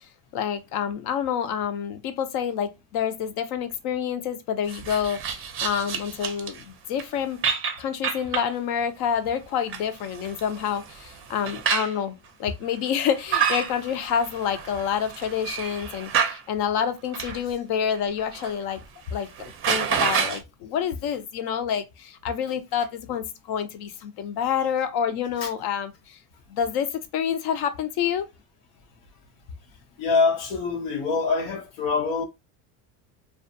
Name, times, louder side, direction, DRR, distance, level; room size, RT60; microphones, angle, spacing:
voice 1, 0.3-7.4 7.8-18.8 19.1-26.2 26.5-28.3, left 8 dB, 60° left, 0.6 m, -28 dB
sound 1, 4.7-6.6 7.0-7.1 7.4-8.5 9.4-12.0 12.9-16.4 17.1-17.4 18.0-18.5 18.8-18.9 19.2-20.4, right 7 dB, 30° right, 0.5 m, -29 dB
voice 2, 30.0-32.2, left 4 dB, 90° left, 0.8 m, -24 dB
2.4 x 2.3 x 2.6 m
supercardioid pair, 120°, 43 cm